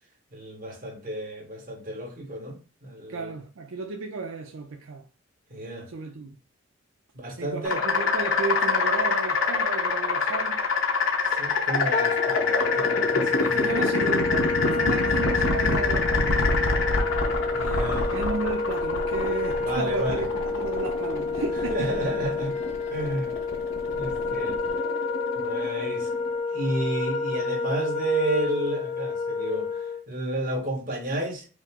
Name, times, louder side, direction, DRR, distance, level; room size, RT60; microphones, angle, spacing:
voice 1, 0.3-3.3 5.5-5.9 7.1-7.8 11.3-14.0 17.5-18.2 19.6-20.2 21.7-22.6 22.9-23.3 23.9-24.6 25.3-31.5, right 1 dB, 40° right, 1.3 m, -32 dB
voice 2, 3.1-5.0 5.9-6.3 7.4-10.6 13.5-16.4 18.1-21.9, right 4 dB, 75° right, 0.5 m, -33 dB
sound 1, 7.6-26.4, left 4 dB, 75° left, 0.9 m, -26 dB
Wind instrument woodwind instrument, 11.9-30.0, left 4 dB, 30° left, 0.3 m, -29 dB
5.1 x 2.0 x 3.6 m
head